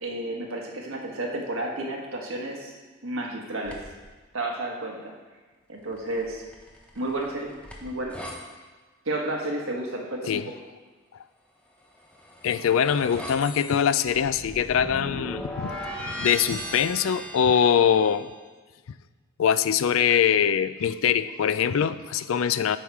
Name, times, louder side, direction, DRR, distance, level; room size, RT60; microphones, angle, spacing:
voice 1, 0.0-2.7 3.0-3.8 4.3-5.1 5.7-6.4 6.9-7.5 7.8-8.2 9.0-10.5, right 1 dB, 85° right, 0 dB, 1.4 m, -31 dB
sound 1, 3.6-4.1 6.0-8.4 11.9-18.2, equal, 5° left, 0.9 m, -38 dB
voice 2, 12.4-15.7 16.1-18.3 19.4-22.8, left 8 dB, 80° left, 15 dB, 0.4 m, -23 dB
9.0 x 6.4 x 4.7 m, 1.4 s
head